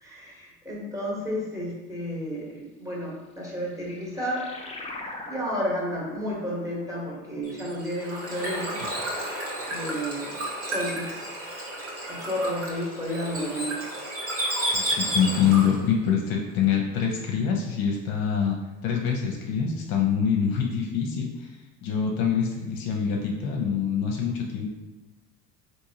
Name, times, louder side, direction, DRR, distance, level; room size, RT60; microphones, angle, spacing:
voice 1, 0.0-4.5 5.3-8.8 9.7-10.3 10.7-11.2 12.1-13.8, equal, 5° right, -5 dB, 1.3 m, -31 dB
sound 1, 3.4-8.5, left 2 dB, 15° left, 0.5 m, -43 dB
Bird / Water, 7.4-15.9, right 1 dB, 30° right, 1.2 m, -32 dB
voice 2, 14.7-18.6 18.8-21.6 21.8-24.7, left 7 dB, 55° left, 0 dB, 0.7 m, -25 dB
3.7 x 2.8 x 2.8 m, 1.2 s
hypercardioid pair, 70°, 43 cm